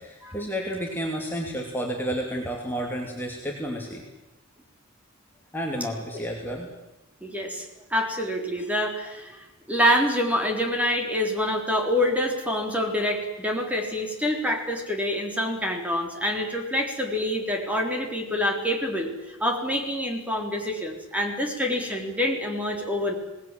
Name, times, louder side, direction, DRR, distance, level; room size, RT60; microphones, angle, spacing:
voice 1, 0.0-4.0 5.5-6.7, equal, 10° left, -1 dB, 2.8 m, -31 dB
voice 2, 7.2-7.7 7.9-23.1, left 1 dB, 5° right, 2 dB, 3.9 m, -26 dB
27.5 x 19.0 x 7.7 m, 0.97 s
head